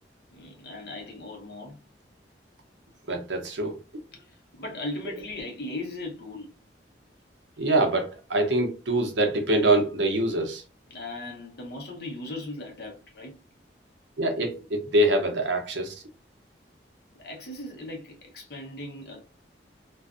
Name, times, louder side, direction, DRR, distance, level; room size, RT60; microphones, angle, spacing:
voice 1, 0.3-1.8 4.2-6.5 10.9-13.3 17.2-19.2, left 2 dB, 60° left, 0.8 m, -38 dB
voice 2, 3.1-3.8 7.6-10.6 14.2-16.0, right 1 dB, 80° right, 0.7 m, -24 dB
2.5 x 2.2 x 2.4 m
head